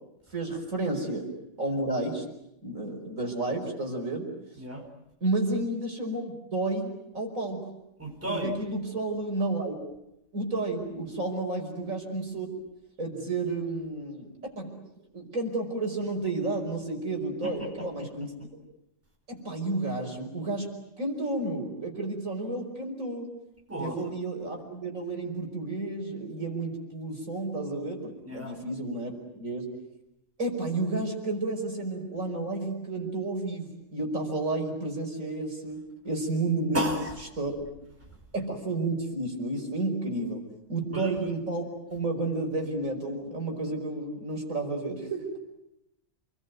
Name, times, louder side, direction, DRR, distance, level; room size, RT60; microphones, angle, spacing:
voice 1, 0.3-1.3 1.6-2.2 2.6-4.3 5.2-7.6 8.3-9.8 10.3-12.5 13.0-14.7 15.1-18.3 19.3-20.7 21.0-23.3 23.8-29.7 30.4-35.8 36.0-36.9 37.4-37.5 38.3-40.4 40.7-41.6 41.9-45.3, right 2 dB, 55° right, 2 dB, 5.7 m, -31 dB
voice 2, 4.5-4.9 8.0-8.6 17.4-18.1 23.7-24.1 28.2-28.6 36.7-37.2 38.1-38.2 40.9-41.2, equal, 10° right, 2 dB, 4.6 m, -33 dB
29.0 x 21.0 x 9.3 m, 0.85 s
omnidirectional pair, 1.6 m